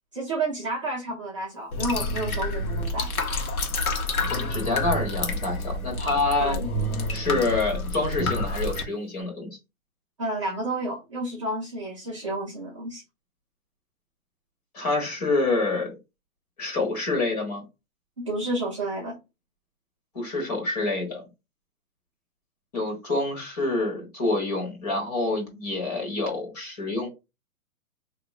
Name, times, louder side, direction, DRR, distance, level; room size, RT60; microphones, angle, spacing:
voice 1, 0.1-3.1 6.4-6.7 10.2-13.0 18.2-19.2, right 2 dB, 20° right, 0.8 m, -30 dB
sound 1, 1.7-8.8, left 2 dB, 75° left, 1.3 m, -28 dB
voice 2, 4.3-6.6 7.1-9.5 14.7-16.0 16.6-17.6 20.1-21.2 22.7-27.1, left 2 dB, 25° left, 1.5 m, -27 dB
4.7 x 3.0 x 2.3 m
hypercardioid pair, 175°, 44 cm